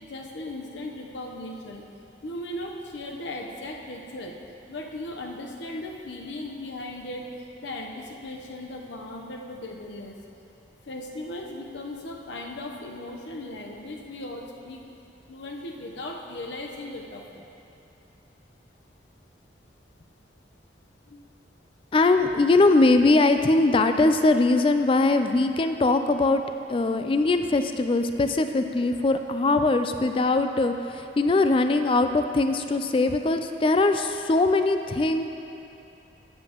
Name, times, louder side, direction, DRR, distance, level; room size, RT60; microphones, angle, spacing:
voice 1, 0.0-1.8 2.2-4.3 4.7-7.2 7.6-10.1 10.9-14.8 15.3-17.4 21.1-21.2, left 1 dB, 75° left, 1 dB, 0.9 m, -37 dB
voice 2, 21.9-26.4 26.7-35.2, left 2 dB, 30° left, 8 dB, 0.3 m, -21 dB
12.5 x 7.7 x 3.0 m, 2.8 s
head